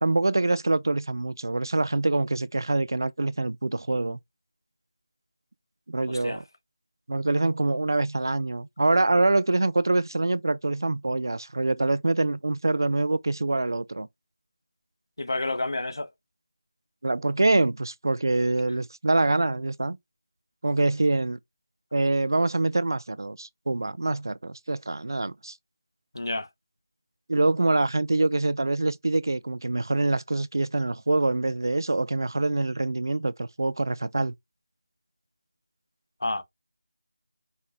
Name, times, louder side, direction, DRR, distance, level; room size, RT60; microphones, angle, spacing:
voice 1, 0.0-4.2 5.9-6.4 7.1-14.1 17.0-20.0 20.6-21.4 21.9-25.5 27.3-34.3, right 2 dB, 65° right, 0.4 m, -25 dB
voice 2, 6.1-6.4 15.2-16.1 26.1-26.5 36.2-36.4, left 2 dB, 85° left, 1.0 m, -29 dB
5.3 x 2.2 x 3.5 m
figure-of-eight pair, 180°, 2 cm